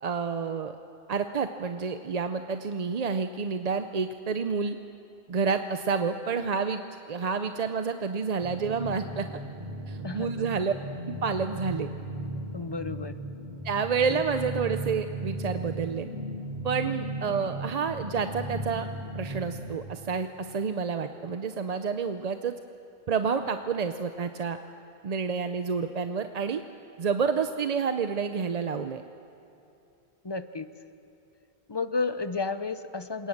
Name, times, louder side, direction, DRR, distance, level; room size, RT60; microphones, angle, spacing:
voice 1, 0.0-0.8 1.1-4.8 5.3-6.8 7.1-9.3 9.9-10.7 11.1-11.9 13.6-16.1 16.6-18.9 19.1-22.5 23.1-24.6 25.0-26.6 27.0-29.0, right 5 dB, 45° right, 8 dB, 0.6 m, -29 dB
sound 1, 8.4-19.7, right 1 dB, 20° right, 4.3 m, -36 dB
voice 2, 10.0-10.5 12.5-13.1 14.1-14.2 30.2-30.7 31.7-33.3, left 4 dB, 30° left, 11 dB, 0.6 m, -32 dB
27.0 x 18.5 x 7.2 m, 2.8 s
omnidirectional pair, 1.1 m